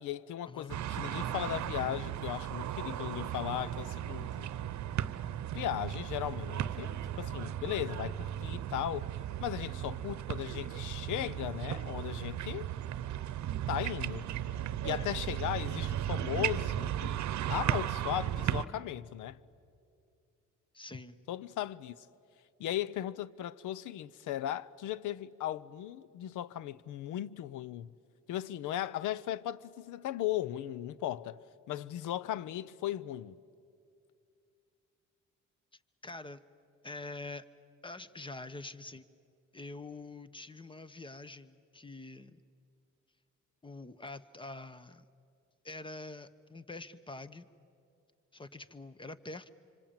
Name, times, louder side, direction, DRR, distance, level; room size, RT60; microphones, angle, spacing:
voice 1, 0.0-4.5 5.5-9.1 9.4-12.7 13.7-14.3 14.8-17.2 17.5-19.4 21.3-22.1 22.6-27.9 28.3-31.4 31.7-33.4, left 12 dB, 85° left, 0.7 m, -37 dB
sound 1, 0.7-18.6, right 11 dB, 65° right, 0.9 m, -36 dB
voice 2, 20.7-21.2 36.0-36.4 36.8-37.5 37.8-39.1 39.5-42.4 43.6-45.0 45.6-47.5 48.3-49.5, left 2 dB, 15° left, 1.1 m, -45 dB
26.0 x 25.5 x 8.9 m
cardioid pair, 90°, 30 cm